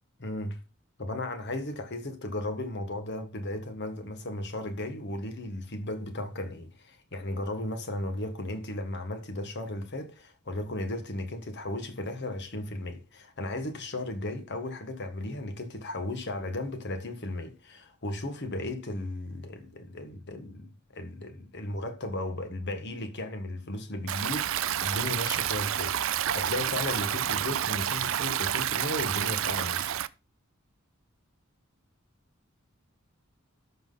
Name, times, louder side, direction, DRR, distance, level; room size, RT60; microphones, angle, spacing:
voice 1, 0.2-0.6 1.0-29.9, left 1 dB, 55° left, 1.6 m, -35 dB
Stream, 24.1-30.1, right 11 dB, 65° right, 0.5 m, -29 dB
13.0 x 5.9 x 3.9 m
head